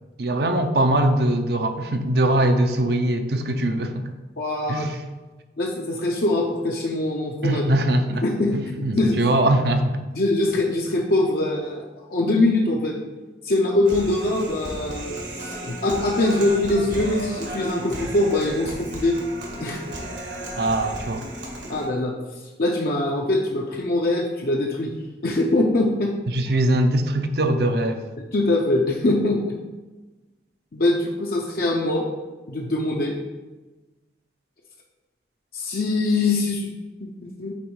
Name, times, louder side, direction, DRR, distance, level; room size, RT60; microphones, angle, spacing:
voice 1, 0.2-4.1 4.7-5.0 7.4-8.2 8.5-10.0 20.6-21.2 26.3-28.0, right 1 dB, 60° right, 7 dB, 0.6 m, -21 dB
voice 2, 4.4-4.9 5.6-7.6 8.2-9.2 10.1-13.0 13.4-19.2 19.6-19.8 21.7-22.1 22.6-24.9 25.2-26.2 28.3-29.5 30.7-32.1 32.5-33.2 35.5-36.7 37.0-37.5, left 2 dB, 55° left, 0 dB, 0.6 m, -23 dB
Human voice, 13.9-21.9, right 1 dB, 80° right, 1.5 m, -34 dB
8.3 x 3.1 x 4.7 m, 1.2 s
head